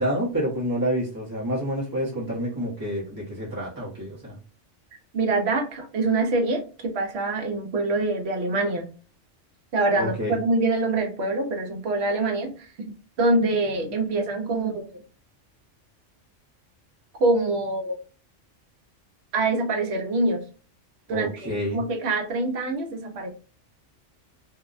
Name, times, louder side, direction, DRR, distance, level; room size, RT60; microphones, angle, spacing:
voice 1, 0.0-4.4 10.0-10.4 21.1-21.8, equal, 20° right, -8 dB, 0.7 m, -28 dB
voice 2, 5.1-8.8 9.7-15.0 17.2-17.9 19.3-20.4 21.1-23.3, right 2 dB, 65° right, 4 dB, 0.9 m, -25 dB
2.6 x 2.1 x 2.4 m, 0.37 s
omnidirectional pair, 1.3 m